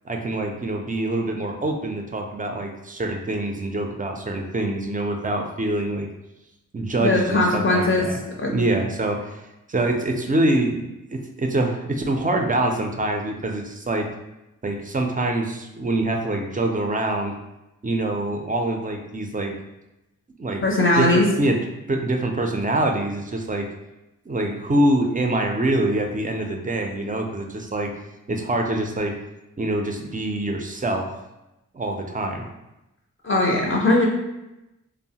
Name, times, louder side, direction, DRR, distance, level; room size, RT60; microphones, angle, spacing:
voice 1, 0.1-6.1 6.7-8.2 8.5-9.4 9.7-14.1 14.6-17.3 17.8-19.5 20.4-20.6 21.0-21.6 21.9-23.7 24.3-27.9 28.3-29.2 29.6-31.1 31.7-32.5, right 1 dB, 25° right, 3 dB, 0.3 m, -25 dB
voice 2, 7.0-8.1 8.4-8.6 20.6-21.3 33.2-34.1, left 2 dB, 40° left, -2 dB, 0.4 m, -19 dB
3.0 x 2.0 x 2.7 m, 0.94 s
wide cardioid pair, 80°, 33 cm